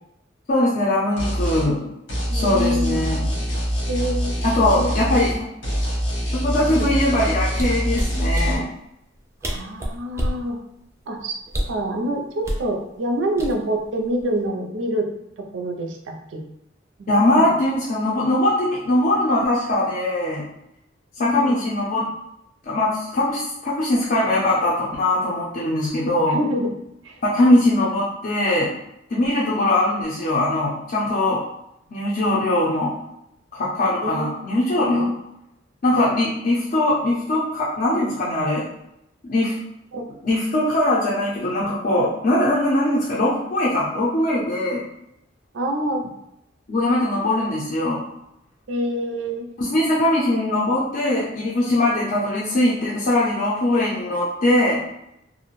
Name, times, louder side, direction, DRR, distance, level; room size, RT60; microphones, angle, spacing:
voice 1, 0.5-1.9 2.3-3.3 4.4-5.5 6.3-8.6 17.1-20.4 21.2-22.1 22.7-26.4 27.2-28.7 29.1-31.4 31.9-32.9 33.5-35.1 35.8-38.6 39.2-39.6 40.2-44.8 46.7-48.0 49.6-54.8, left 1 dB, 50° left, -6 dB, 0.5 m, -21 dB
sound 1, 1.2-1.7 2.1-5.4 5.6-8.5, equal, 90° left, 1.0 m, -24 dB
voice 2, 2.3-3.0 3.9-4.3 4.7-5.1 6.7-6.9 9.4-10.6 11.1-11.4 11.6-15.1 15.5-16.4 17.0-17.5 21.2-21.6 26.3-26.7 27.0-27.1 34.0-35.1 39.9-40.0 45.5-46.1 48.7-49.5, equal, 90° right, 3 dB, 0.5 m, -26 dB
sound 2, 7.5-8.5 9.2-9.3 9.4-10.4 11.5-11.8 12.4-12.7 13.4-13.8 14.2-14.5, equal, 15° right, 0.3 m, -27 dB
2.4 x 2.1 x 3.0 m, 0.82 s
head